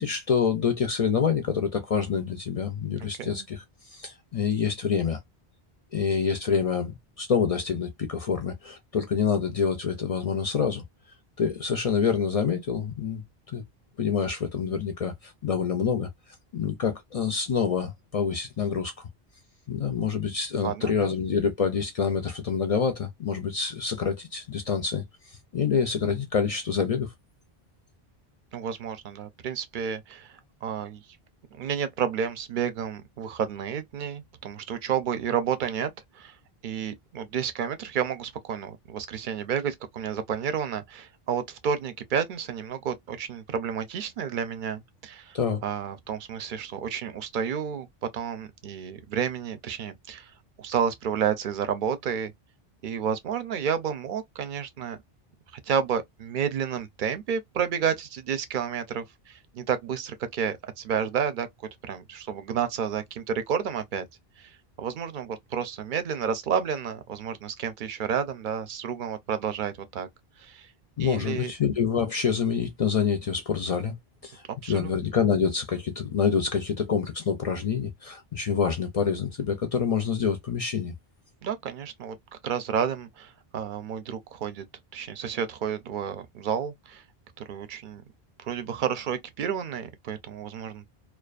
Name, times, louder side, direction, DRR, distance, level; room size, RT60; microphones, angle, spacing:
voice 1, 0.0-5.2 5.9-10.8 11.4-13.6 14.0-16.1 16.5-19.1 19.7-27.1 45.3-45.6 71.0-74.0 74.2-81.0, left 6 dB, 55° left, 0.4 m, -27 dB
voice 2, 20.6-21.1 28.5-31.0 31.5-36.3 36.6-45.4 45.6-47.9 48.1-50.3 50.6-52.3 52.8-55.0 55.7-61.5 61.8-64.1 64.4-70.1 70.4-70.7 71.0-71.5 74.6-74.9 81.4-82.2 82.4-84.6 84.9-87.0 87.4-88.0 88.4-90.9, right 7 dB, 60° right, 0.6 m, -31 dB
2.4 x 2.3 x 2.3 m
omnidirectional pair, 1.0 m